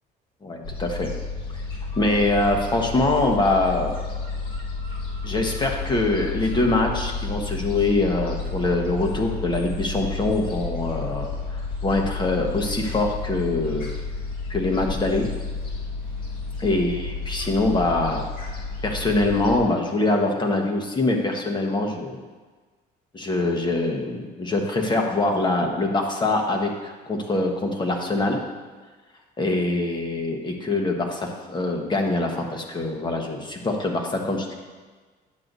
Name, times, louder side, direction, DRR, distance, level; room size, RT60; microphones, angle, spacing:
voice 1, 0.4-1.1 2.0-4.0 5.2-13.9 14.5-15.3 16.6-18.2 18.8-22.2 23.1-28.4 29.4-34.5, left 2 dB, 25° left, 1 dB, 1.2 m, -24 dB
Gull seagull, 0.6-19.6, left 4 dB, 60° left, 1.9 m, -31 dB
10.5 x 7.6 x 2.7 m, 1.4 s
cardioid pair, 110°, 17 cm